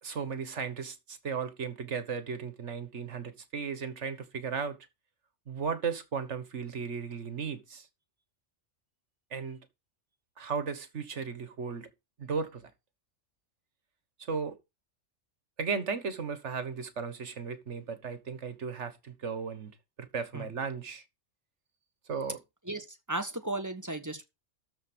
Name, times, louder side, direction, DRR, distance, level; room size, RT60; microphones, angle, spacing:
voice 1, 0.0-4.8 5.5-7.9 9.3-9.6 10.4-11.9 12.2-12.7 14.3-14.6 15.6-19.7 20.0-21.0 22.1-22.4, right 5 dB, 70° right, 1.7 m, -35 dB
voice 2, 22.6-24.2, right 2 dB, 15° right, 1.3 m, -35 dB
13.0 x 4.5 x 6.2 m
omnidirectional pair, 1.3 m